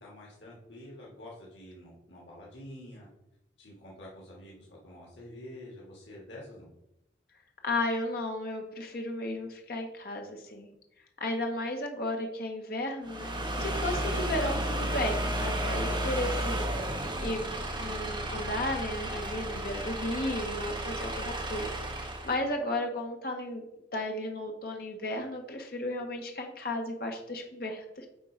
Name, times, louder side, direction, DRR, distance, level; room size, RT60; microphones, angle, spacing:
voice 1, 0.0-3.1 3.6-6.7 13.6-13.8 21.1-21.3, left 1 dB, 90° left, -4 dB, 2.0 m, -47 dB
voice 2, 7.6-10.7 11.2-16.7 17.2-21.7 22.2-23.6 23.9-28.1, left 1 dB, 55° left, 3 dB, 1.1 m, -34 dB
sound 1, 13.0-22.4, right 1 dB, 25° right, 1.2 m, -33 dB
9.0 x 3.7 x 5.1 m, 0.87 s
head